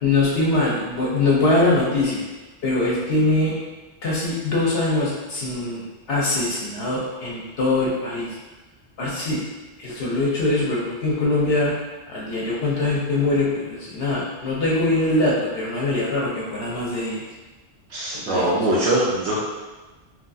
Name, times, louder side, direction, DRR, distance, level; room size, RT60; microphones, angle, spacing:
voice 1, 0.0-2.2 2.6-3.5 4.0-5.8 6.1-8.3 9.0-9.4 9.8-11.7 12.1-17.2 18.1-18.7, left 2 dB, 65° left, -6 dB, 0.8 m, -22 dB
voice 2, 17.9-19.4, right 1 dB, 90° right, -8 dB, 0.9 m, -22 dB
3.0 x 2.3 x 2.5 m, 1.2 s
omnidirectional pair, 1.1 m